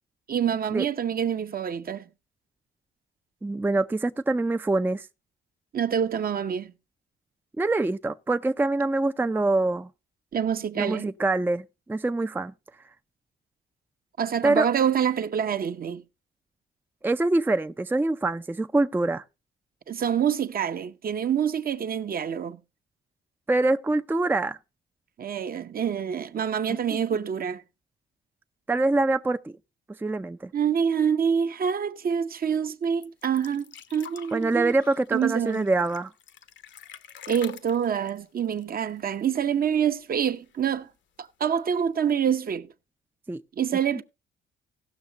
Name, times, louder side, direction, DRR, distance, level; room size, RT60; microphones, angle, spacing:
voice 1, 0.3-2.0 5.7-6.7 10.3-11.1 14.2-16.0 19.9-22.6 25.2-27.6 30.5-34.7 35.1-35.7 37.3-40.9 41.2-42.7 43.6-44.0, right 8 dB, 50° right, 0.9 m, -26 dB
voice 2, 3.4-5.1 7.6-9.9 10.8-12.5 14.4-14.7 17.0-19.2 23.5-24.6 26.7-27.2 28.7-29.5 30.0-30.5 34.3-36.1 43.3-43.4, right 2 dB, 10° right, 0.5 m, -25 dB
sound 1, 33.0-39.4 39.7-39.8 40.1-40.8 41.7-41.8, left 9 dB, 70° left, 1.0 m, -46 dB
17.0 x 6.3 x 4.0 m
cardioid pair, 90°, 20 cm